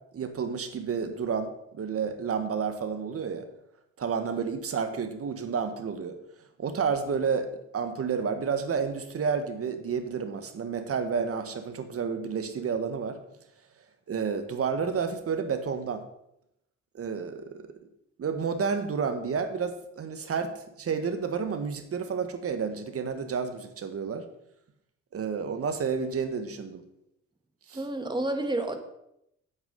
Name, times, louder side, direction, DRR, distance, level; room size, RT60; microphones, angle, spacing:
voice 1, 0.1-3.4 4.0-6.2 6.6-13.2 14.1-16.0 16.9-17.7 18.2-20.5 20.8-24.3 25.1-26.8 27.7-27.8, right 6 dB, 50° right, 8 dB, 1.6 m, -30 dB
voice 2, 27.7-28.8, right 2 dB, 15° right, 6 dB, 1.8 m, -29 dB
8.9 x 8.6 x 5.4 m, 0.80 s
cardioid pair, 90°, 30 cm